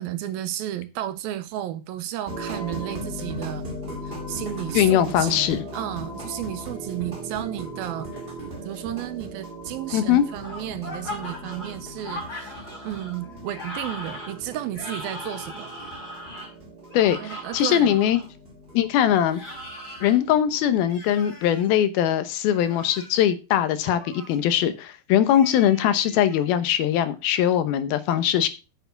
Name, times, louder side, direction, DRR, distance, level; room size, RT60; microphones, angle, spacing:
voice 1, 0.0-3.7 4.0-8.1 8.6-15.8 17.2-18.0, right 12 dB, 80° right, 2.4 m, -33 dB
sound 1, 2.3-20.9, right 1 dB, 25° right, 1.4 m, -38 dB
voice 2, 4.7-5.6 9.9-10.2 16.9-18.2 18.7-19.4 20.0-28.5, left 10 dB, 75° left, 2.7 m, -21 dB
sound 2, 10.4-18.2 19.3-20.2 20.9-21.7 22.5-23.2 23.8-24.4 25.3-26.4, left 1 dB, 25° left, 4.1 m, -39 dB
9.3 x 7.0 x 5.7 m
omnidirectional pair, 4.6 m